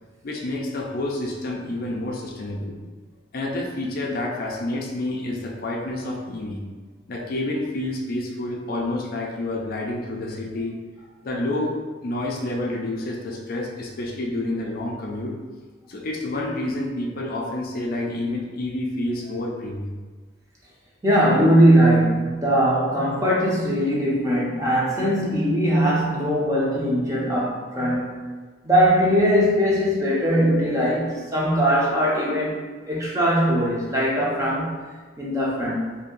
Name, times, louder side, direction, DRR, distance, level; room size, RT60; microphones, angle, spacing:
voice 1, 0.2-2.8 3.3-6.6 7.1-10.8 11.2-15.3 15.9-20.0, left 1 dB, 50° left, -1 dB, 0.4 m, -29 dB
voice 2, 21.0-28.2 28.6-32.6 32.9-34.8 35.2-35.8, equal, 15° right, -5 dB, 0.7 m, -20 dB
2.7 x 2.6 x 3.8 m, 1.4 s
head